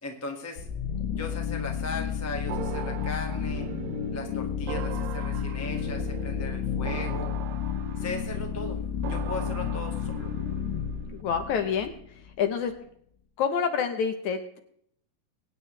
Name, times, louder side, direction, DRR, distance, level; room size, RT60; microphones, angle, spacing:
voice 1, 0.0-0.7 1.1-3.7 4.1-7.3 8.0-8.8 9.1-10.3, left 2 dB, 10° left, 2 dB, 0.8 m, -37 dB
sound 1, 0.6-12.3, left 8 dB, 85° left, 2.9 m, -32 dB
sound 2, 2.5-11.2, right 12 dB, 80° right, 2.2 m, -40 dB
voice 2, 11.2-11.9 12.4-12.7 13.4-14.6, left 7 dB, 65° left, 7 dB, 2.1 m, -27 dB
23.0 x 9.4 x 3.3 m, 0.66 s
omnidirectional pair, 4.1 m